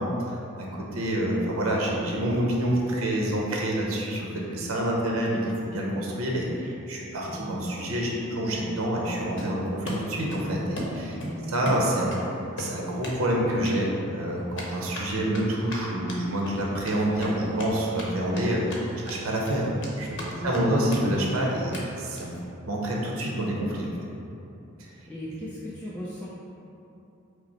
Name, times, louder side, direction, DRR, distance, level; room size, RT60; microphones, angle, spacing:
voice 1, 0.0-11.2 11.5-12.3 12.6-22.4 22.7-23.9, right 1 dB, 80° right, -2 dB, 0.7 m, -27 dB
voice 2, 7.2-7.6 11.2-11.5 20.3-20.9 24.9-26.3, equal, 5° left, -8 dB, 0.4 m, -38 dB
Run, 9.4-10.5 10.8-12.2 12.6-13.2 13.5-13.7 14.5-18.0 18.3-18.4 18.7-19.2 19.5-20.3 20.5-20.6 20.9-21.0 21.3-21.4 21.7-21.8 22.2-22.4, equal, 60° left, 0.8 m, -36 dB
5.2 x 2.0 x 4.3 m, 2.8 s
head